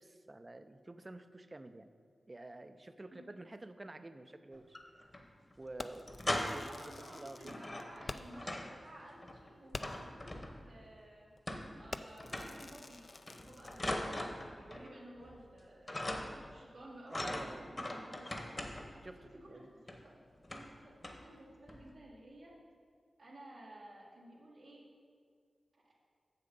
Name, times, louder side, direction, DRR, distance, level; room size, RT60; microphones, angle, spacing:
voice 1, 0.0-1.9 2.3-4.8 5.6-7.4 17.1-17.7 19.0-19.7, right 2 dB, 35° right, 10 dB, 0.5 m, -50 dB
sound 1, 4.5-5.2 5.5-5.6 5.9-6.8 7.4-8.8 9.1-10.8 11.5-11.9 12.2-12.7 13.3-14.9 15.2-15.6 15.9-16.5 17.1-19.0 19.9-20.0 20.4-20.8 21.0-21.3 21.7-21.9, left 1 dB, 35° left, 1.0 m, -41 dB
Fireworks, 5.8-8.5 8.9-9.0 9.3-9.4 9.7-10.2 10.8-11.0 11.3-11.5 11.9-14.0, left 3 dB, 55° left, 0.4 m, -48 dB
voice 2, 6.4-11.3 11.8-18.5 19.1-20.1 20.5-22.5 23.2-24.8, right 1 dB, 85° right, -7 dB, 1.8 m, -54 dB
7.1 x 6.8 x 5.3 m, 2.1 s
cardioid pair, 45°, 0 cm